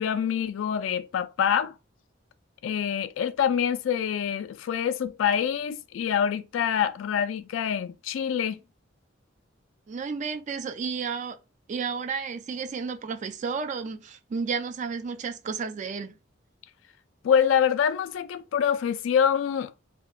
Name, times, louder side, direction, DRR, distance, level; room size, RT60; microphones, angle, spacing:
voice 1, 0.0-1.7 2.6-8.6 17.2-19.7, left 8 dB, 85° left, 0.3 m, -25 dB
voice 2, 9.9-11.4 11.7-16.1, right 5 dB, 40° right, 0.3 m, -32 dB
2.8 x 2.1 x 2.3 m
head